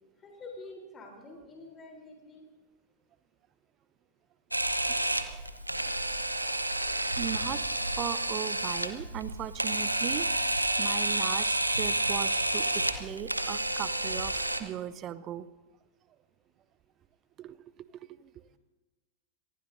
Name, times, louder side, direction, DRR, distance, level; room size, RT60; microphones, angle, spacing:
voice 1, 0.2-2.5, left 2 dB, 20° left, 1 dB, 3.6 m, -47 dB
Camera, 4.5-14.6, right 1 dB, 85° right, 1.1 m, -30 dB
voice 2, 7.2-7.6 8.0-10.3 10.8-15.5 17.4-17.6 18.2-18.3, right 11 dB, 30° right, 16 dB, 0.8 m, -38 dB
27.0 x 20.0 x 2.7 m, 1.2 s
figure-of-eight pair, 90°, 0 cm